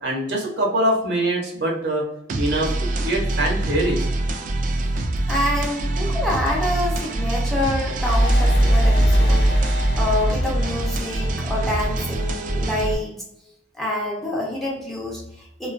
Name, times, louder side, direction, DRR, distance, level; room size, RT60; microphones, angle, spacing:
voice 1, 0.0-2.0 2.3-4.1, right 1 dB, 70° right, -2 dB, 0.8 m, -23 dB
sound 1, 2.3-13.0, right 2 dB, 50° right, 0.3 m, -25 dB
voice 2, 5.3-9.5 10.0-13.2 13.7-15.7, left 1 dB, ahead, -3 dB, 0.5 m, -27 dB
sound 2, 8.1-11.8, equal, 85° left, 0.7 m, -20 dB
2.3 x 2.3 x 2.4 m, 0.81 s
head